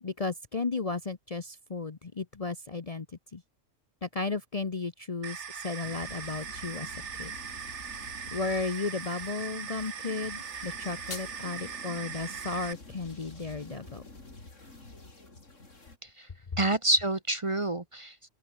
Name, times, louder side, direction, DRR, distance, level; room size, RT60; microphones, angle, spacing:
voice 1, 0.0-3.1 3.3-3.4 4.0-6.9 7.2-7.3 8.3-14.0, left 3 dB, 35° left, 0.9 m, -34 dB
sound 1, 5.2-12.7, right 7 dB, 65° right, 1.6 m, -40 dB
sound 2, 5.8-16.0, left 2 dB, 75° left, 4.6 m, -49 dB
sound 3, 10.6-11.6, left 3 dB, 50° left, 2.8 m, -45 dB
voice 2, 16.6-18.3, right 2 dB, 25° right, 1.2 m, -28 dB
open air
omnidirectional pair, 1.3 m